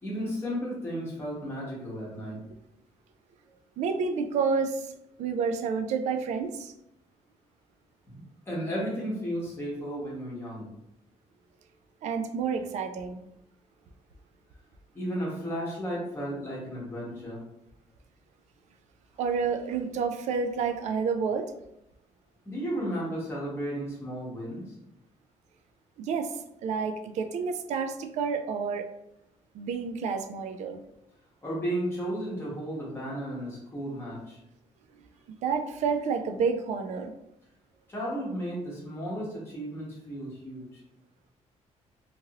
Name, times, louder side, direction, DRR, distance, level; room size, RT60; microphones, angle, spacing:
voice 1, 0.0-2.4 8.1-10.7 14.9-17.4 22.4-24.8 31.4-34.4 37.9-40.8, equal, 20° left, -6 dB, 0.9 m, -34 dB
voice 2, 3.8-4.9 5.2-6.7 12.0-13.2 19.2-21.5 26.0-26.3 26.6-28.9 29.5-30.8 35.4-37.1, right 5 dB, 70° right, 7 dB, 0.4 m, -29 dB
3.0 x 2.5 x 2.8 m, 0.83 s
cardioid pair, 160°, 12 cm